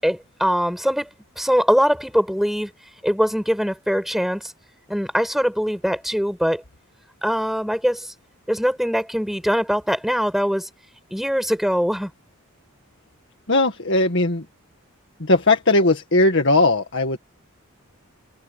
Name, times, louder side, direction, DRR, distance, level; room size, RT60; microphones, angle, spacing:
voice 1, 0.0-1.1 1.4-2.7 3.0-4.5 4.9-6.6 7.2-8.1 8.5-10.7 11.1-12.1, equal, ahead, 7.1 m, -22 dB
voice 2, 13.5-14.5 15.2-17.2, left 2 dB, 55° left, 1.9 m, -18 dB
head